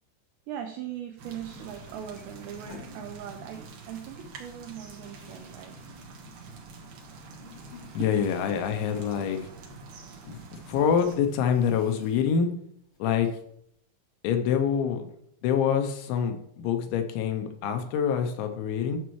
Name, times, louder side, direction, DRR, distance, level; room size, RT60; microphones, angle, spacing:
voice 1, 0.5-5.8 6.8-6.9 8.0-8.1, right 10 dB, 85° right, 5 dB, 2.5 m, -40 dB
sound 1, 1.2-1.3 1.4-3.7 4.0-6.9 7.2-10.2 10.5-10.6 11.0-12.5 12.9-13.7, left 4 dB, 55° left, 1.3 m, -52 dB
sound 2, 1.2-11.2, right 3 dB, 65° right, 2.4 m, -46 dB
voice 2, 7.9-9.5 10.3-10.4 10.7-12.5 13.0-13.3 14.2-15.1 15.4-19.0, left 7 dB, 80° left, 6 dB, 2.9 m, -26 dB
11.0 x 7.2 x 3.1 m, 0.73 s
omnidirectional pair, 5.7 m